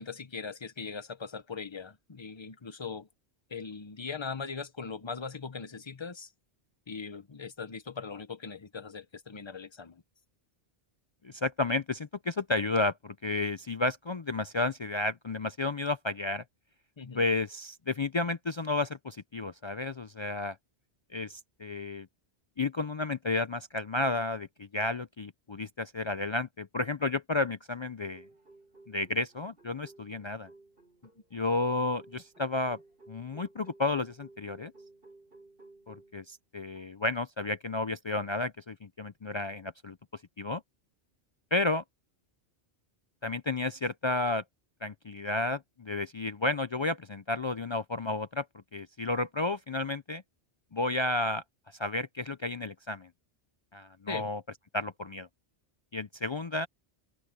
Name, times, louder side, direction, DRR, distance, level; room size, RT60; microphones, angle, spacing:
voice 1, 0.0-3.1 3.5-6.3 6.9-10.0 17.0-17.2 54.1-54.3, left 5 dB, 30° left, 0.8 m, -40 dB
voice 2, 11.2-16.4 17.1-20.6 21.1-22.1 22.6-28.2 28.9-30.5 31.3-32.8 33.1-34.7 35.9-40.0 40.4-40.6 41.5-41.8 43.2-44.4 44.8-48.5 48.7-50.2 50.7-51.4 51.8-53.1 53.7-54.4 54.7-55.3 55.9-56.7, left 2 dB, 50° left, 0.3 m, -32 dB
sound 1, 28.0-36.3 36.7-36.9 37.4-37.5, right 2 dB, 55° right, 7.0 m, -57 dB
omnidirectional pair, 1.1 m